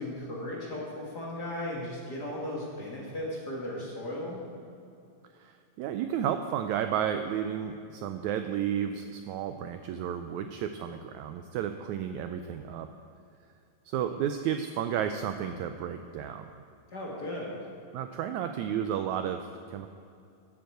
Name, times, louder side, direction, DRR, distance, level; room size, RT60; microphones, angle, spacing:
voice 1, 0.0-4.4 16.9-17.6, left 1 dB, 40° left, -3 dB, 1.7 m, -36 dB
voice 2, 5.4-12.9 13.9-16.5 17.9-19.9, right 9 dB, 90° right, 8 dB, 1.6 m, -32 dB
11.5 x 7.9 x 7.8 m, 2.5 s
omnidirectional pair, 3.9 m